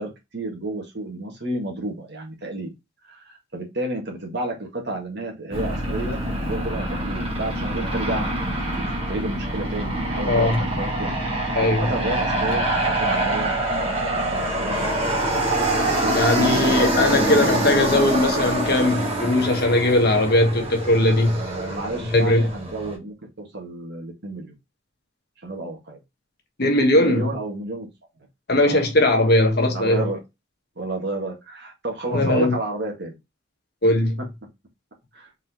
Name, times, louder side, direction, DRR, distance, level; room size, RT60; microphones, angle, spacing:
voice 1, 0.0-2.7 3.1-6.2 6.5-8.3 8.8-11.2 11.6-15.4 15.9-16.6 21.2-24.5 25.4-26.0 26.9-27.9 28.6-28.9 29.6-30.2 30.8-33.1 35.1-35.3, right 2 dB, 55° right, 1.8 m, -31 dB
Aircraft, 5.5-22.9, right 1 dB, 25° right, 1.7 m, -25 dB
voice 2, 10.2-10.6 11.5-11.9 16.1-21.4 22.1-22.5 26.6-27.3 28.5-30.1 32.1-32.6 33.8-34.2, left 1 dB, 50° left, 1.2 m, -19 dB
4.4 x 3.9 x 2.8 m
head